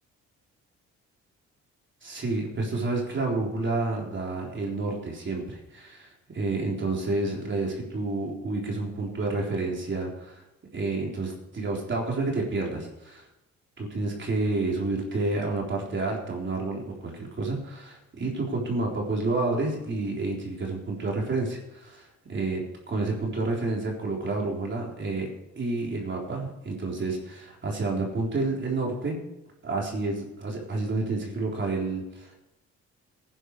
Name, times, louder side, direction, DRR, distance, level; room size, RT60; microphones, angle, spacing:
voice 1, 2.0-10.4 10.7-13.3 13.8-22.6 22.9-25.3 25.6-29.2 29.6-32.4, right 3 dB, 40° right, -2 dB, 3.8 m, -29 dB
15.0 x 10.0 x 4.8 m, 0.90 s
cardioid pair, 90°, 30 cm